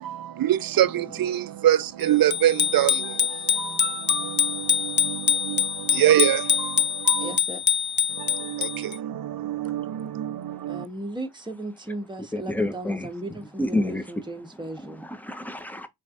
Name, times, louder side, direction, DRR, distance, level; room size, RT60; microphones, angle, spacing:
voice 1, 0.0-7.4 8.2-10.8, right 12 dB, 60° right, 0.5 m, -25 dB
Bicycle bell, 2.3-9.0, left 7 dB, 30° left, 0.3 m, -24 dB
voice 2, 7.2-7.6 10.7-15.1, right 1 dB, 10° right, 1.0 m, -36 dB
voice 3, 12.3-13.1 13.6-14.0 14.8-15.9, left 1 dB, 5° left, 0.8 m, -28 dB
4.2 x 3.2 x 2.5 m
cardioid pair, 55°, 39 cm